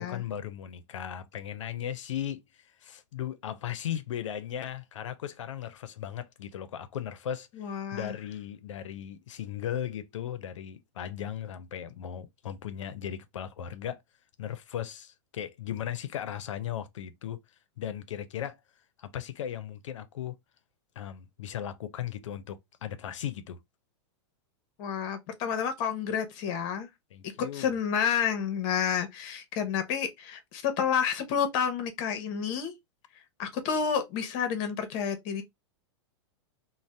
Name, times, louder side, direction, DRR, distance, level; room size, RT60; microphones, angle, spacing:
voice 1, 0.0-14.0 14.4-17.4 17.8-18.6 19.0-20.4 21.0-23.6 27.1-27.7, left 10 dB, 90° left, 0.5 m, -37 dB
voice 2, 7.6-8.2 24.8-26.9 27.5-32.7 33.4-35.4, left 7 dB, 45° left, 0.8 m, -30 dB
2.6 x 2.1 x 3.2 m
supercardioid pair, 140°, 15 cm